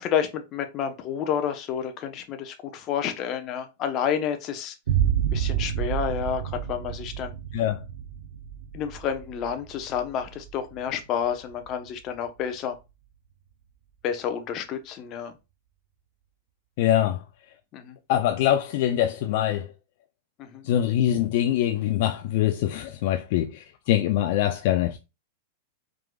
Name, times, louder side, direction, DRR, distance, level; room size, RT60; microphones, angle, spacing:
voice 1, 0.0-4.7 5.3-7.4 8.7-12.8 14.0-15.3 17.7-18.0 20.4-20.6, left 8 dB, 40° left, 0.9 m, -30 dB
sound 1, 4.9-12.3, right 10 dB, 75° right, 0.6 m, -30 dB
voice 2, 7.5-7.8 16.8-17.2 18.1-19.7 20.6-25.0, left 12 dB, 60° left, 0.4 m, -23 dB
4.6 x 3.8 x 2.3 m
hypercardioid pair, 105°, 0 cm